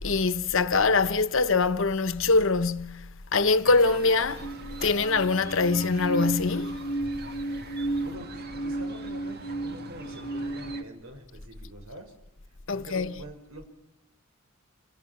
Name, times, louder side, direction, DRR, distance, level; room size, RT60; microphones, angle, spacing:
voice 1, 0.0-4.5 4.8-6.8 12.7-13.2, left 4 dB, 65° left, 1.1 m, -24 dB
sound 1, 3.6-10.8, right 3 dB, 50° right, 1.8 m, -44 dB
sound 2, 4.4-10.8, right 2 dB, 35° left, 1.2 m, -33 dB
voice 2, 8.0-12.1 12.7-13.7, right 1 dB, 85° right, 5.8 m, -45 dB
29.0 x 29.0 x 6.1 m
head